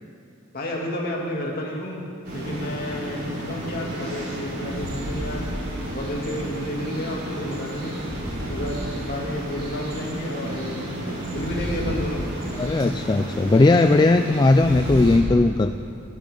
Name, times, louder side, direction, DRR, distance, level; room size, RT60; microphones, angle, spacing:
voice 1, 0.5-5.4 5.9-8.0 8.5-10.9 11.3-12.2, left 1 dB, 45° left, -2 dB, 2.8 m, -31 dB
sound 1, 2.2-15.2, right 1 dB, 50° right, 4.9 m, -31 dB
voice 2, 12.6-15.7, left 2 dB, 20° left, 8 dB, 0.3 m, -18 dB
27.5 x 12.0 x 3.9 m, 2.5 s
head